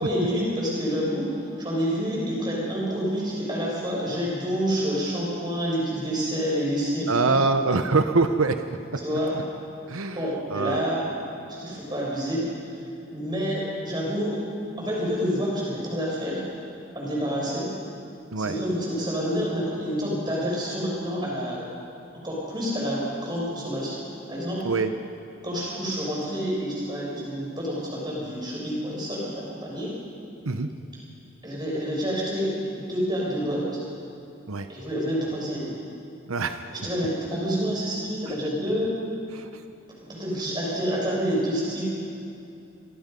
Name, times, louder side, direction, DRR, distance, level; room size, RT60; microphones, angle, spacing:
voice 1, 0.0-7.5 9.0-9.4 10.1-11.1 11.5-12.8 13.1-14.4 14.8-16.4 16.9-17.7 18.4-21.6 22.2-24.7 25.4-29.9 31.4-32.6 32.9-33.8 34.7-35.7 36.7-38.9 40.1-41.8, equal, 20° right, -4 dB, 6.5 m, -28 dB
voice 2, 7.1-8.6 8.9-9.0 9.9-10.8 18.3-18.6 24.6-24.9 30.4-30.7 34.5-34.7 36.3-36.7 39.3-39.6, right 3 dB, 90° right, 8 dB, 0.9 m, -24 dB
27.0 x 20.0 x 5.4 m, 2.7 s
head